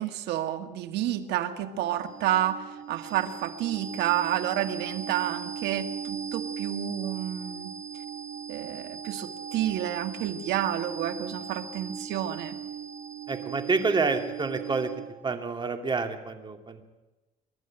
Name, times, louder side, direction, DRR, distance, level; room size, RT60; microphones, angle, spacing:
voice 1, 0.0-7.7 8.5-12.6, right 12 dB, 80° right, 8 dB, 1.7 m, -30 dB
sound 1, 1.3-15.2, right 7 dB, 50° right, 2.7 m, -39 dB
voice 2, 13.3-14.9 15.2-16.8, right 4 dB, 25° right, 6 dB, 2.5 m, -28 dB
26.5 x 12.0 x 9.0 m, 1.1 s
cardioid pair, 110°, 17 cm